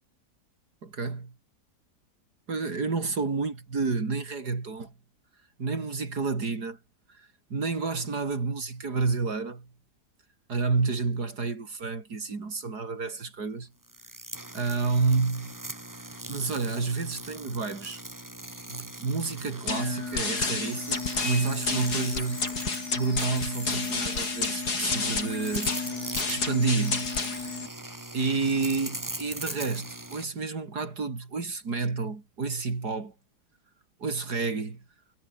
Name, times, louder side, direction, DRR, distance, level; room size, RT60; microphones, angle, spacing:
voice 1, 0.8-1.3 2.5-4.9 5.6-6.8 7.1-9.7 10.5-13.7 14.5-15.6 16.3-18.0 18.7-22.4 22.9-25.8 26.3-27.1 28.1-33.1 34.0-34.8, right 4 dB, 75° right, 3.7 m, -30 dB
sound 1, 13.8-30.2, right 1 dB, 10° right, 2.0 m, -41 dB
sound 2, 19.7-27.7, left 4 dB, 75° left, 4.0 m, -30 dB
omnidirectional pair, 1.7 m